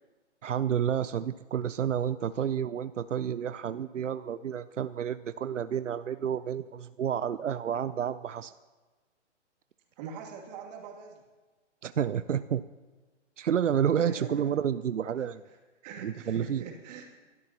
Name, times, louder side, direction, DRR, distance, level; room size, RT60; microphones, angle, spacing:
voice 1, 0.4-8.5 11.8-12.6 13.4-15.4 16.0-16.6, right 8 dB, 90° right, 13 dB, 0.6 m, -30 dB
voice 2, 10.0-11.2 14.0-14.5 15.5-15.6 15.8-17.1, right 6 dB, 35° right, 1 dB, 2.6 m, -42 dB
29.0 x 12.0 x 2.9 m, 1.3 s
hypercardioid pair, 135°, 36 cm